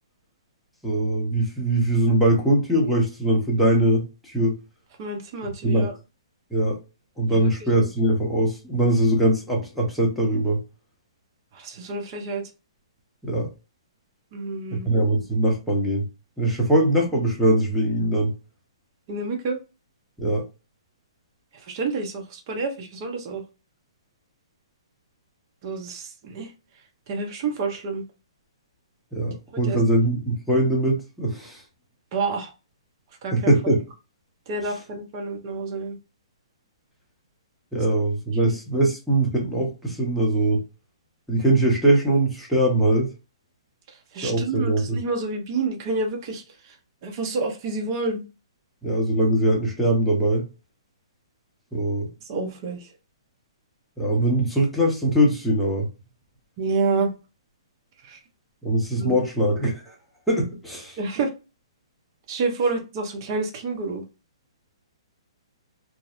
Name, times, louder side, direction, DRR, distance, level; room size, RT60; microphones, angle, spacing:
voice 1, 0.8-4.6 5.6-5.9 6.5-6.8 7.2-10.6 13.2-13.5 14.7-16.1 16.4-18.3 20.2-20.4 29.1-31.6 33.3-33.8 37.7-40.6 41.3-43.1 44.2-45.0 48.8-50.4 51.7-52.1 54.0-55.9 58.6-59.9 60.3-61.0, right 1 dB, ahead, 0.8 m, -22 dB
voice 2, 5.0-6.0 7.3-7.5 7.8-7.9 11.5-12.5 14.3-14.9 19.1-19.6 21.5-23.4 25.6-26.5 27.1-28.0 29.6-29.8 32.1-32.5 33.2-33.5 34.5-36.0 38.4-38.5 43.9-46.8 47.0-48.2 52.2-52.9 56.6-57.1 58.0-58.2 59.0-59.1 61.0-61.3 62.3-64.0, right 3 dB, 35° right, 0.6 m, -28 dB
2.6 x 2.0 x 2.4 m
hypercardioid pair, 145°, 3 cm